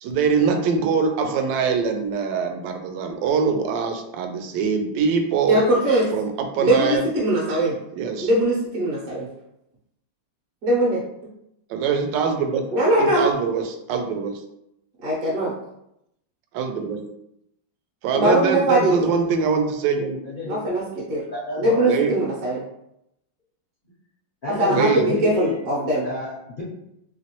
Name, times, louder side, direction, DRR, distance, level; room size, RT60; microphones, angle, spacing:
voice 1, 0.0-5.6 6.1-7.0 8.0-8.3 11.7-12.6 13.0-14.4 16.5-17.0 18.0-20.2 21.9-22.1 24.7-25.2, right 5 dB, 80° right, 5 dB, 1.2 m, -23 dB
voice 2, 5.5-6.1 6.6-7.8 8.2-9.3 10.6-11.0 12.7-13.3 15.0-15.5 18.1-19.1 20.5-20.8 21.1-21.2 21.6-22.6 24.4-26.1, right 1 dB, 60° right, -6 dB, 1.1 m, -21 dB
voice 3, 20.2-20.5 21.3-22.0 24.4-25.6 26.0-26.6, left 3 dB, 70° left, -6 dB, 0.4 m, -29 dB
3.1 x 3.0 x 2.9 m, 0.81 s
omnidirectional pair, 2.0 m